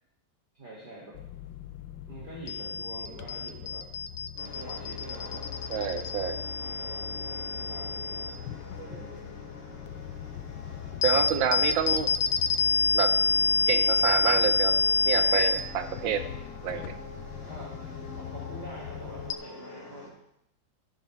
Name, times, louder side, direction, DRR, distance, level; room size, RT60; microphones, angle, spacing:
voice 1, 0.5-1.2 2.1-3.9 4.5-6.0 6.6-8.3 8.8-9.2 17.4-17.8 18.2-20.1, right 1 dB, 25° right, -5 dB, 2.1 m, -46 dB
sound 1, 1.2-19.3, left 4 dB, 90° left, 1.4 m, -29 dB
sound 2, 4.4-20.1, left 3 dB, 70° left, 3.2 m, -45 dB
voice 2, 5.7-6.4 8.8-9.2 11.0-12.1 12.9-13.2 13.7-14.7 15.1-16.2 16.6-16.9, right 8 dB, 85° right, 9 dB, 1.6 m, -28 dB
13.0 x 10.5 x 3.2 m, 0.79 s
omnidirectional pair, 2.1 m